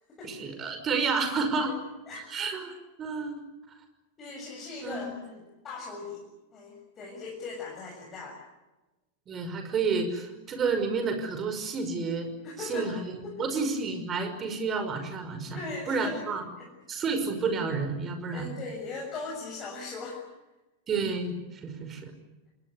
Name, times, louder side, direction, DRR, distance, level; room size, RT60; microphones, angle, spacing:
voice 1, 0.2-1.7 2.3-2.7 3.0-3.5 4.8-5.2 9.3-12.3 12.6-15.6 15.9-16.4 16.9-18.5 20.9-22.1, right 4 dB, 25° right, 7 dB, 5.6 m, -30 dB
voice 2, 4.2-6.2 6.5-8.4 12.4-12.9 13.2-13.6 15.5-16.3 16.6-16.7 18.3-20.2, left 3 dB, 25° left, -2 dB, 7.2 m, -39 dB
29.0 x 21.0 x 8.2 m, 1.1 s
figure-of-eight pair, 90°, 0 cm